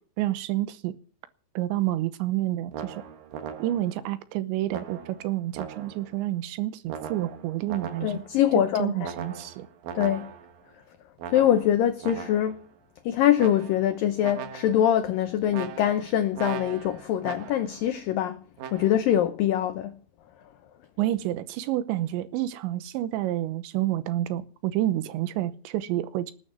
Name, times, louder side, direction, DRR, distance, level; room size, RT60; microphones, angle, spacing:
voice 1, 0.2-0.9 1.6-2.9 3.6-8.2 8.8-9.7 21.0-26.3, right 14 dB, 80° right, 3.2 m, -29 dB
sound 1, 2.7-4.0 4.7-6.2 6.9-8.4 9.0-10.6 11.2-12.6 13.4-14.0 14.2-14.9 15.5-17.8 18.6-18.9, right 7 dB, 65° right, 2.5 m, -39 dB
voice 2, 8.0-9.1 9.9-10.3 11.3-12.6 13.1-18.4 18.7-19.9, left 10 dB, 90° left, 1.9 m, -24 dB
19.5 x 9.1 x 6.2 m
omnidirectional pair, 5.2 m